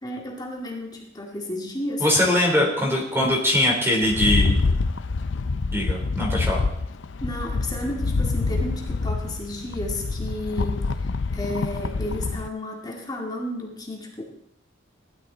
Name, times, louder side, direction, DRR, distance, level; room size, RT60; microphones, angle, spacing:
voice 1, 0.0-2.1 7.2-14.2, left 1 dB, 20° left, 0 dB, 2.1 m, -32 dB
voice 2, 2.0-4.6 5.7-6.6, left 1 dB, 15° right, 0 dB, 3.4 m, -21 dB
Rattle, 4.0-12.5, left 3 dB, 70° left, 0.5 m, -26 dB
16.5 x 12.0 x 4.0 m, 0.73 s
head